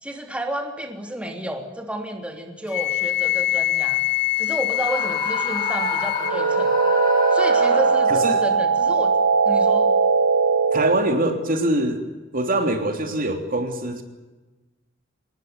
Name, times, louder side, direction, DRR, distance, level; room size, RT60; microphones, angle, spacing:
voice 1, 0.0-4.0 4.4-6.7 7.3-9.2 9.4-9.9, right 1 dB, 5° right, 3 dB, 3.1 m, -31 dB
Wind instrument woodwind instrument, 2.7-6.4, left 16 dB, 55° left, 1.1 m, -24 dB
Screaming, 4.7-8.4, left 2 dB, 25° left, 5.7 m, -29 dB
sound 1, 6.2-11.2, right 4 dB, 80° right, 1.1 m, -19 dB
voice 2, 8.1-8.4 10.7-12.0 12.3-14.0, right 1 dB, 45° right, 5 dB, 3.2 m, -23 dB
25.5 x 20.0 x 9.7 m, 1.2 s
head